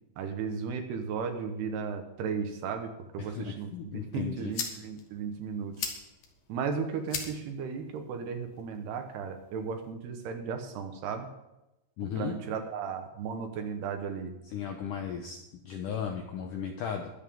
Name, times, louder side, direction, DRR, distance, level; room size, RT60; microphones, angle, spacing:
voice 1, 0.2-5.9 6.5-11.3 12.2-14.4, right 6 dB, 75° right, 6 dB, 3.2 m, -35 dB
voice 2, 3.2-4.5 12.0-12.3 14.5-15.4 15.6-17.1, left 7 dB, 75° left, 4 dB, 1.9 m, -35 dB
sound 1, 3.9-9.9, left 5 dB, 55° left, 2.3 m, -42 dB
22.0 x 8.2 x 3.8 m, 0.95 s
omnidirectional pair, 4.9 m